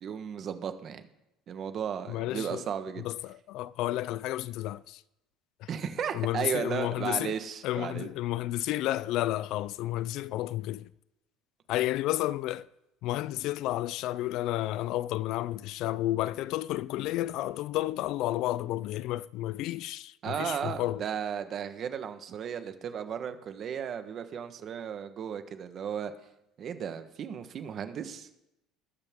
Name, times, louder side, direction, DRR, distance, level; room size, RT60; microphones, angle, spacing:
voice 1, 0.0-1.0 1.5-3.0 5.7-8.1 20.2-26.1 26.6-28.4, right 8 dB, 35° right, 1.2 m, -35 dB
voice 2, 2.1-2.6 3.0-5.0 5.6-5.7 6.1-7.4 7.6-10.9 11.7-12.7 13.0-21.0, left 15 dB, 55° left, 0.4 m, -31 dB
19.5 x 13.0 x 3.7 m
cardioid pair, 155°, 0 cm